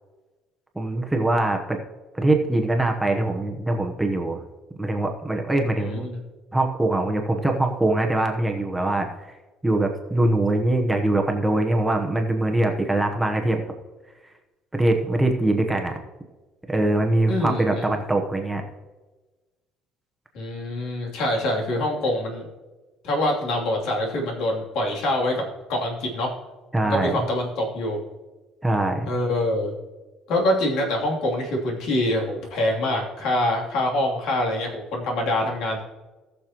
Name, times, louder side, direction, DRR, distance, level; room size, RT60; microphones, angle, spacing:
voice 1, 0.7-1.8 2.1-4.4 4.8-6.1 6.5-9.1 9.6-13.6 14.7-16.0 16.7-18.6 26.7-27.2 28.6-29.1, right 2 dB, 5° right, 2 dB, 1.0 m, -22 dB
voice 2, 5.8-6.2 17.3-17.9 20.3-22.4 23.0-25.4 25.7-26.3 26.8-28.0 29.1-29.7 30.3-35.8, left 1 dB, 70° left, -1 dB, 2.9 m, -25 dB
18.5 x 6.7 x 3.0 m, 1.2 s
cardioid pair, 145°, 0 cm